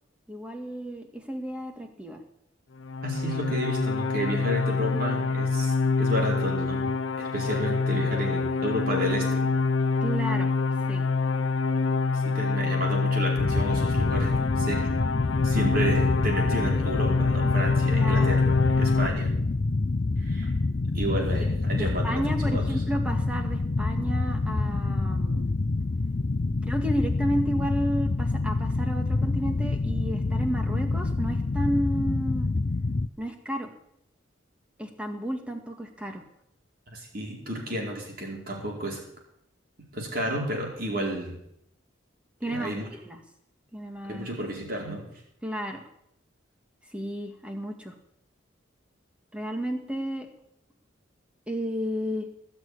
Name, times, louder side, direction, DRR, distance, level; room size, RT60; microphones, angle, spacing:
voice 1, 0.3-2.2 4.9-5.0 10.0-10.5 10.9-11.1 17.9-18.4 21.7-25.5 26.6-32.5 33.2-33.7 34.8-36.2 42.4-42.7 43.0-43.2 43.7-44.3 45.4-45.8 46.9-47.9 49.3-50.3 51.5-52.3, equal, 5° right, 4 dB, 1.9 m, -32 dB
sound 1, 2.8-19.1, left 4 dB, 85° left, 0.7 m, -26 dB
voice 2, 3.0-9.6 12.1-14.9 15.4-19.4 20.2-20.5 20.9-22.7 36.9-39.0 39.9-41.4 42.5-42.9 44.0-45.1, right 1 dB, 45° right, -1 dB, 4.7 m, -31 dB
sound 2, 13.4-33.1, left 3 dB, 45° left, 0.5 m, -27 dB
19.5 x 6.7 x 9.8 m, 0.75 s
head